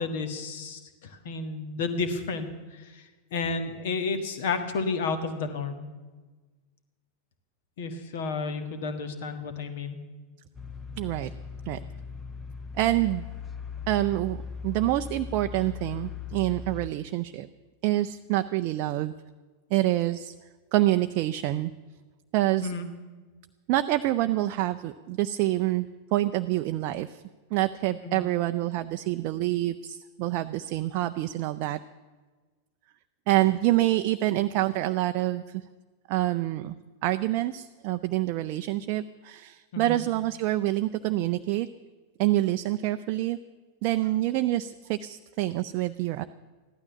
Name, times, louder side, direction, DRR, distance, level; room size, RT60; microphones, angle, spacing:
voice 1, 0.0-3.1 3.3-5.8 7.8-10.0 22.6-22.9 28.0-28.3 39.7-40.0, left 4 dB, 55° left, 9 dB, 1.6 m, -31 dB
sound 1, 10.5-16.9, left 6 dB, 15° left, 0.8 m, -39 dB
voice 2, 11.0-11.3 11.7-11.8 12.7-13.2 13.9-17.5 17.8-19.1 19.7-20.3 20.7-21.7 22.3-22.7 23.7-27.2 27.5-31.8 33.3-35.6 36.1-36.7 37.0-41.7 42.2-43.4 43.8-46.2, right 15 dB, 45° right, 9 dB, 0.4 m, -27 dB
15.0 x 12.0 x 6.9 m, 1.3 s
figure-of-eight pair, 90°, 0 cm